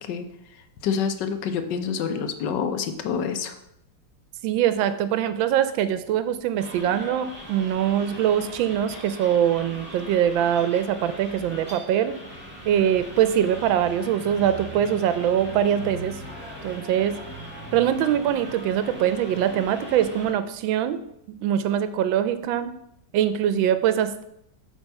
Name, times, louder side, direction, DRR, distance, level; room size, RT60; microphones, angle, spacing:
voice 1, 0.8-3.5, left 6 dB, 70° left, 8 dB, 1.3 m, -27 dB
voice 2, 4.4-12.2 12.6-16.2 16.6-17.1 17.7-21.0 21.3-22.7 23.1-24.2, right 10 dB, 85° right, 12 dB, 1.4 m, -23 dB
sound 1, 6.6-20.3, equal, 5° right, 1.6 m, -40 dB
8.2 x 3.6 x 5.3 m, 0.77 s
omnidirectional pair, 2.1 m